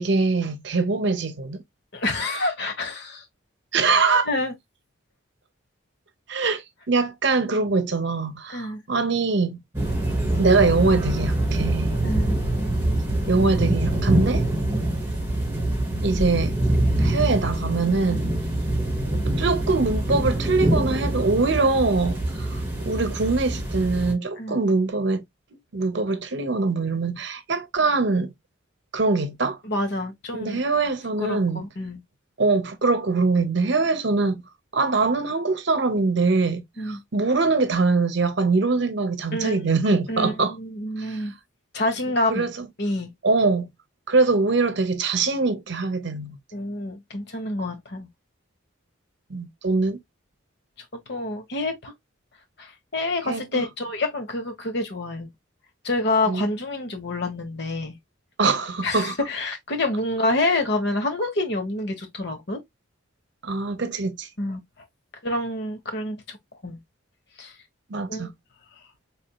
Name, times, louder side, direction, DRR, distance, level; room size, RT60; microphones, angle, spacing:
voice 1, 0.0-1.6 3.7-4.3 6.3-9.6 10.4-11.9 13.3-14.4 16.0-16.5 17.0-18.3 19.1-25.2 25.7-28.3 28.9-29.6 30.3-31.6 32.4-34.4 34.7-40.5 41.0-41.2 42.3-42.7 43.2-43.7 44.1-46.4 49.3-50.0 53.2-53.7 56.3-56.4 58.4-59.1 63.4-64.3 67.9-68.3, right 3 dB, 60° right, 0.7 m, -23 dB
voice 2, 1.9-3.2 4.3-4.5 8.5-8.8 12.0-12.3 24.4-24.6 29.6-30.6 31.2-32.0 36.8-37.0 39.3-41.3 41.7-42.5 42.8-43.1 46.5-48.1 51.1-51.9 52.6-55.3 55.8-58.0 58.8-62.6 64.4-64.6 65.2-66.4 66.6-66.8 67.4-67.5 68.1-68.3, left 2 dB, 55° left, 1.2 m, -27 dB
sound 1, 9.7-24.1, right 1 dB, 10° right, 2.9 m, -24 dB
4.2 x 3.5 x 2.2 m
head